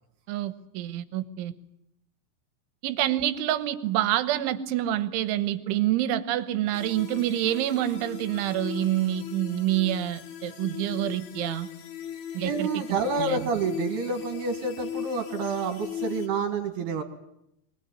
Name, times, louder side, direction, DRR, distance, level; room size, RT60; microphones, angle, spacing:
voice 1, 0.3-1.5 2.8-11.7 12.3-12.8 13.1-13.5, right 13 dB, 80° right, 13 dB, 3.4 m, -27 dB
sound 1, 6.7-16.3, left 9 dB, 75° left, 4.6 m, -38 dB
voice 2, 12.4-17.0, right 4 dB, 60° right, 6 dB, 3.6 m, -28 dB
23.5 x 19.5 x 9.9 m, 0.80 s
omnidirectional pair, 5.6 m